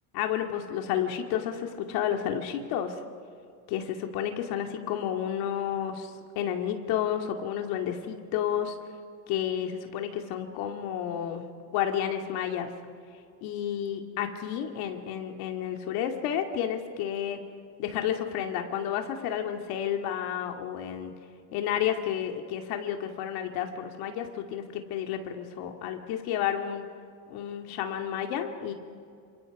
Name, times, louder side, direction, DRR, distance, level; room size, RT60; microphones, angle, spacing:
voice 1, 0.1-3.0 3.7-6.1 6.4-8.8 9.3-11.4 11.7-12.7 13.4-17.4 17.8-21.1 21.5-26.8 27.3-28.7, left 9 dB, 75° left, 4 dB, 2.4 m, -31 dB
29.0 x 27.5 x 4.9 m, 2.3 s
cardioid pair, 155°, 38 cm